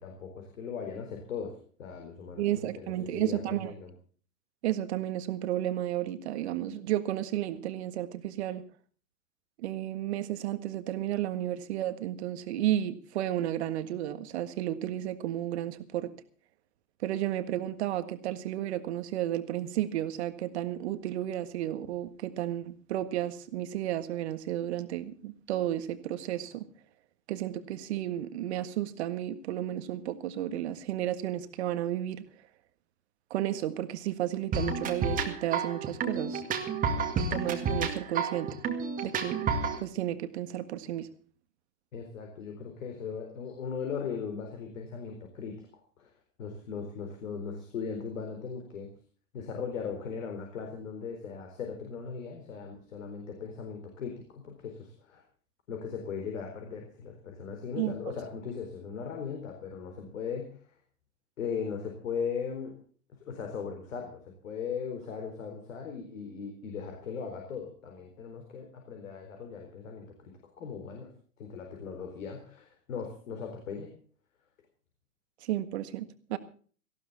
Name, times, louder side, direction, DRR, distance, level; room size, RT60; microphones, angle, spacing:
voice 1, 0.0-3.9 41.9-45.6 46.0-46.1 46.4-48.9 49.3-55.2 55.7-60.5 61.4-62.7 63.3-71.1 71.4-73.9, left 6 dB, 55° left, 3 dB, 4.3 m, -38 dB
voice 2, 2.4-3.7 4.6-8.6 9.6-16.1 17.0-26.6 27.3-32.2 33.3-36.4 37.1-39.5 39.8-41.1 57.8-57.9 75.4-76.4, right 12 dB, 45° right, 11 dB, 1.7 m, -32 dB
sound 1, 34.5-39.8, right 4 dB, 15° right, 2.1 m, -31 dB
18.5 x 15.0 x 4.1 m, 0.43 s
figure-of-eight pair, 110°, 46 cm